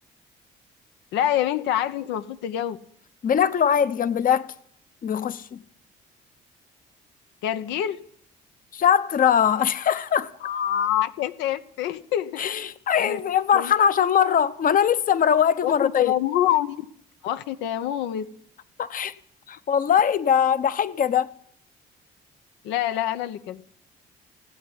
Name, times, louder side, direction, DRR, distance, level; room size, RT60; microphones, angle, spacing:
voice 1, 1.1-2.8 7.4-8.0 10.4-12.5 12.9-13.2 13.5-13.7 15.6-16.8 17.2-18.3 22.6-23.6, left 11 dB, 85° left, 0.8 m, -26 dB
voice 2, 3.2-4.5 5.0-5.6 8.7-10.3 12.4-16.1 18.8-19.1 19.5-21.3, left 8 dB, 50° left, 0.9 m, -21 dB
16.5 x 8.1 x 9.9 m
supercardioid pair, 75°, 18 cm